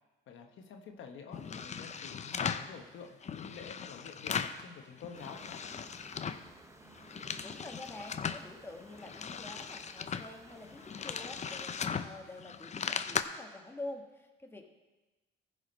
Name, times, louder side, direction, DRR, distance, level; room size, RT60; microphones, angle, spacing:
voice 1, 0.3-5.8, left 6 dB, 75° left, 4 dB, 1.0 m, -48 dB
sound 1, 1.3-2.7 3.2-4.6 5.0-6.5 6.9-8.4 8.9-13.2, left 6 dB, 35° left, 0.5 m, -38 dB
sound 2, 5.1-11.8, right 3 dB, 15° right, 0.5 m, -57 dB
voice 2, 7.4-14.7, left 2 dB, 10° left, 2 dB, 1.4 m, -47 dB
14.5 x 4.9 x 5.2 m, 1.2 s
cardioid pair, 90°, 20 cm